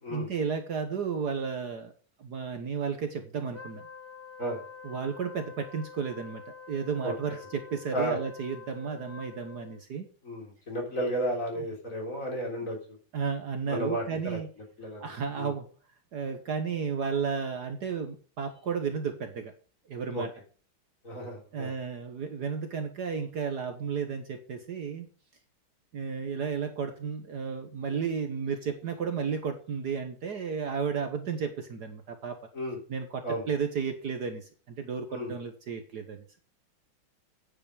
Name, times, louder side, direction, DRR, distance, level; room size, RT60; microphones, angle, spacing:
voice 1, 0.1-1.9 2.2-3.8 4.8-6.4 6.7-10.1 13.1-14.5 15.0-15.7 16.1-19.5 19.9-20.3 21.5-25.1 25.9-32.4 32.9-36.2, right 6 dB, 55° right, 7 dB, 1.6 m, -33 dB
Wind instrument woodwind instrument, 3.5-9.8, left 6 dB, 20° left, 0.3 m, -47 dB
voice 2, 7.0-7.4 7.9-8.2 10.2-13.0 13.7-14.4 14.8-15.5 20.1-20.2 21.0-21.7 32.5-32.8 33.2-33.5 35.1-35.3, equal, 35° left, 0 dB, 3.9 m, -33 dB
9.5 x 7.8 x 4.9 m, 0.40 s
omnidirectional pair, 2.3 m